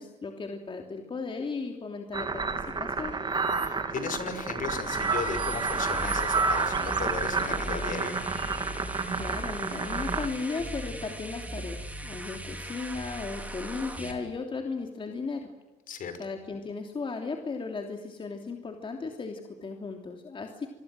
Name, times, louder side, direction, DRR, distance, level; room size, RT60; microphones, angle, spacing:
voice 1, 0.0-3.1 9.1-15.5 16.2-20.7, left 4 dB, 30° left, 3 dB, 3.1 m, -36 dB
sound 1, 2.1-10.3, right 4 dB, 25° right, 3.0 m, -30 dB
voice 2, 3.6-8.2 15.9-16.1, left 6 dB, 55° left, 9 dB, 5.5 m, -35 dB
sound 2, 4.7-14.1, right 1 dB, 10° right, 4.5 m, -39 dB
27.5 x 23.5 x 7.8 m, 1.2 s
cardioid pair, 110°, 17 cm